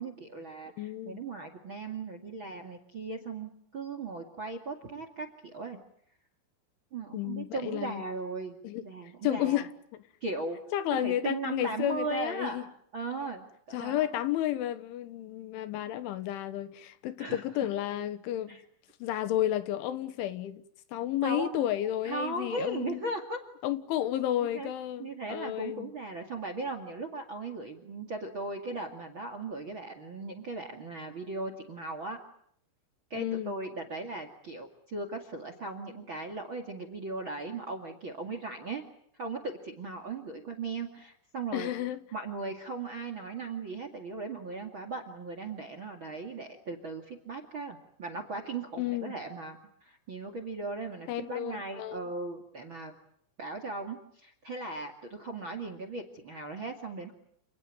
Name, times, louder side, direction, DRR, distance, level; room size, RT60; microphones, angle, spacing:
voice 1, 0.0-5.8 6.9-8.6 8.8-9.7 10.2-10.6 10.9-12.6 12.9-14.1 17.2-17.4 18.5-18.6 21.2-21.6 22.0-23.4 24.5-24.7 25.0-32.2 33.1-38.8 39.2-41.7 42.1-52.9 53.4-57.1, right 3 dB, 40° right, 1.9 m, -38 dB
voice 2, 0.8-1.2 7.1-8.0 8.6-8.8 9.2-9.7 10.7-12.7 13.7-18.6 19.0-20.6 20.9-23.0 23.6-25.9 33.2-33.5 41.5-42.0 48.8-49.1 51.1-52.1, left 12 dB, 80° left, 3.6 m, -32 dB
29.5 x 18.5 x 9.5 m
omnidirectional pair, 5.6 m